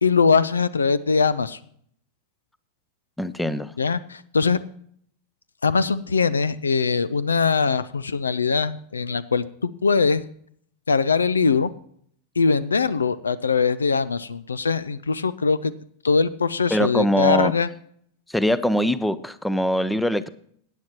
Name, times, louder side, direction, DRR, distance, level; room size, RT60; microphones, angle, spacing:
voice 1, 0.0-1.6 3.8-4.6 5.6-10.3 10.9-11.7 12.4-15.8 16.0-17.7, left 5 dB, 75° left, 18 dB, 0.5 m, -21 dB
voice 2, 3.2-3.7 16.7-17.5 18.3-20.3, equal, 5° left, 16 dB, 0.7 m, -22 dB
18.0 x 9.9 x 2.9 m, 0.64 s
figure-of-eight pair, 90°, 0 cm